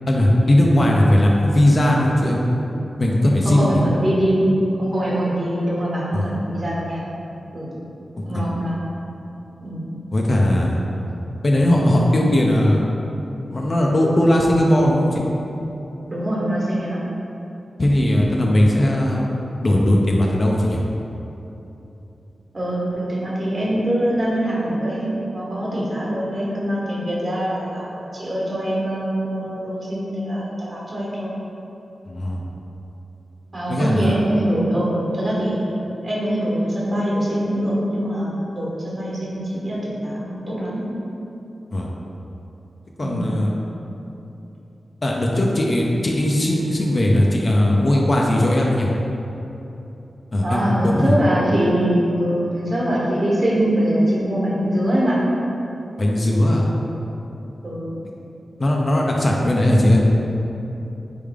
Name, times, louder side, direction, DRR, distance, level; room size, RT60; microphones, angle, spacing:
voice 1, 0.1-2.4 3.0-3.8 6.1-6.3 8.2-8.5 10.1-10.8 11.4-12.8 13.5-15.3 17.8-19.2 19.6-20.8 32.1-32.4 33.7-34.2 41.7-41.9 43.0-43.5 45.0-48.9 50.3-51.1 56.0-56.6 58.6-60.0, left 1 dB, 40° left, -2 dB, 0.5 m, -18 dB
voice 2, 3.4-4.4 4.8-7.0 7.5-7.7 8.3-8.8 9.6-9.9 16.1-17.0 22.5-31.3 33.5-35.6 36.0-40.8 43.0-43.3 50.4-55.2 57.6-57.9, right 1 dB, 40° right, -6 dB, 1.3 m, -23 dB
4.5 x 3.4 x 3.5 m, 3.0 s
wide cardioid pair, 110°, 0 cm